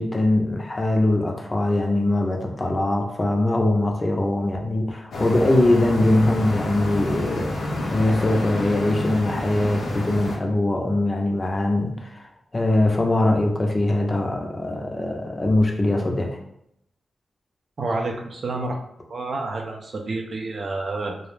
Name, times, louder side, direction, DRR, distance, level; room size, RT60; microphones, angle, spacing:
voice 1, 0.0-16.4, left 1 dB, 35° left, 2 dB, 0.5 m, -22 dB
sound 1, 5.1-10.4, left 1 dB, 80° left, 0.5 m, -29 dB
voice 2, 17.8-18.8 19.1-21.2, right 2 dB, 60° right, 2 dB, 0.5 m, -29 dB
2.3 x 2.0 x 3.1 m, 0.76 s
cardioid pair, 70°, 0 cm